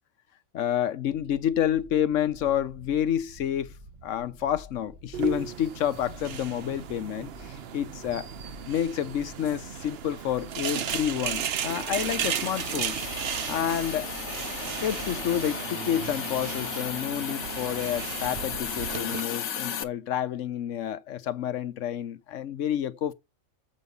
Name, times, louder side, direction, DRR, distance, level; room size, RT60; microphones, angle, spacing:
voice 1, 0.5-3.8 4.0-8.3 8.7-13.0 13.5-14.1 14.8-23.1, left 10 dB, 70° left, 1.1 m, -29 dB
sound 1, 1.0-15.4, left 1 dB, 35° right, 1.4 m, -49 dB
sound 2, 5.1-19.2, right 9 dB, 55° right, 0.8 m, -35 dB
Hiss, 12.0-19.8, left 8 dB, 90° left, 1.3 m, -35 dB
7.3 x 5.3 x 6.8 m
omnidirectional pair, 1.4 m